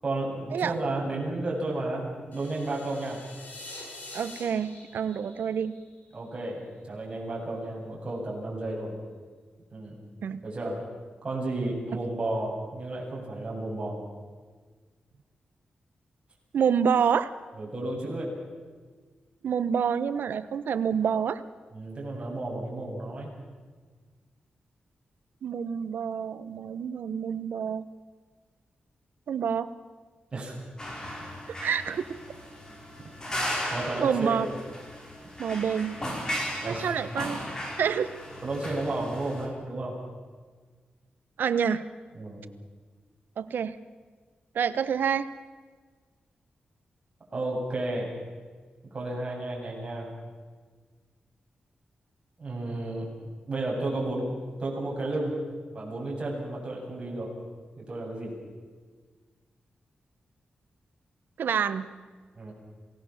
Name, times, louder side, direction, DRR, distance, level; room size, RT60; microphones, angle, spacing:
voice 1, 0.0-3.2 6.1-8.9 9.7-10.0 10.4-10.8 11.2-14.0 17.6-18.3 21.7-23.4 30.3-30.6 33.7-34.4 36.6-36.9 38.4-40.0 42.1-42.4 47.3-48.1 48.9-50.1 52.4-55.4 55.7-57.3 57.8-58.3 62.3-62.5, right 2 dB, 30° right, -3 dB, 7.9 m, -32 dB
sound 1, 2.3-6.4, left 2 dB, 65° left, 7.6 m, -45 dB
voice 2, 4.1-5.7 10.2-10.4 16.5-17.3 19.4-21.4 25.4-27.9 29.3-29.7 31.6-32.0 34.0-34.5 35.4-36.0 36.6-37.4 37.8-38.1 41.4-41.8 43.4-43.8 44.5-45.3 61.4-61.9, right 7 dB, 90° right, 13 dB, 1.1 m, -27 dB
sound 2, 30.8-39.5, equal, 20° left, 4.7 m, -36 dB
27.5 x 18.0 x 7.4 m, 1.5 s
wide cardioid pair, 150°, 3 cm